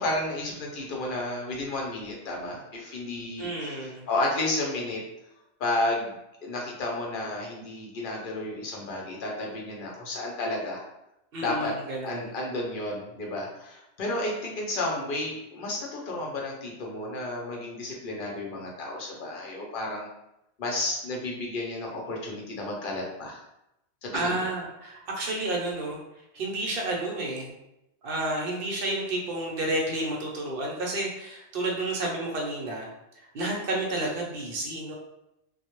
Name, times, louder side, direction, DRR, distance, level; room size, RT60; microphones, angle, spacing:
voice 1, 0.0-5.0 5.6-6.2 6.4-10.8 11.4-11.7 12.0-20.1 20.6-23.4 24.0-24.5, left 2 dB, 55° left, -1 dB, 0.7 m, -32 dB
voice 2, 3.4-4.0 11.3-12.3 24.1-26.0 26.3-27.5 28.0-32.9 33.3-35.0, right 2 dB, 65° right, -1 dB, 0.8 m, -30 dB
2.2 x 2.0 x 2.9 m, 0.86 s
omnidirectional pair, 1.1 m